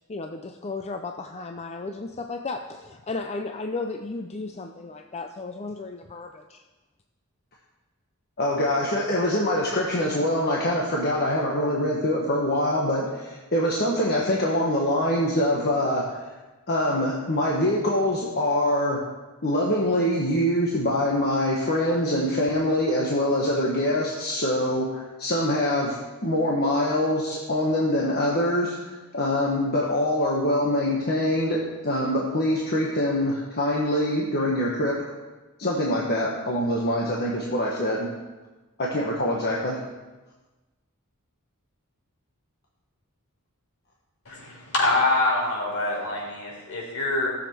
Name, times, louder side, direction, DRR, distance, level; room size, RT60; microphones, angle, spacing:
voice 1, 0.1-6.6, left 3 dB, 30° left, 5 dB, 0.5 m, -34 dB
voice 2, 8.4-16.2 16.7-19.0 19.4-26.0 26.2-35.0 35.6-38.1 38.8-39.8, left 1 dB, 45° left, -3 dB, 1.4 m, -24 dB
voice 3, 44.3-47.3, left 2 dB, 65° left, -3 dB, 4.4 m, -25 dB
16.5 x 7.2 x 4.6 m, 1.2 s
head